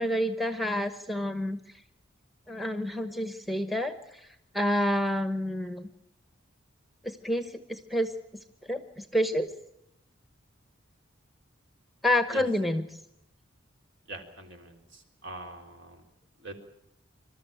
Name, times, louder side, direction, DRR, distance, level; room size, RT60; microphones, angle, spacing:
voice 1, 0.0-1.6 2.5-4.0 4.5-5.9 7.0-8.1 8.6-9.5 12.0-12.8, left 1 dB, ahead, 9 dB, 1.0 m, -28 dB
voice 2, 14.1-16.0 16.4-16.5, right 2 dB, 65° right, 3 dB, 3.7 m, -43 dB
26.5 x 13.0 x 9.1 m, 0.82 s
head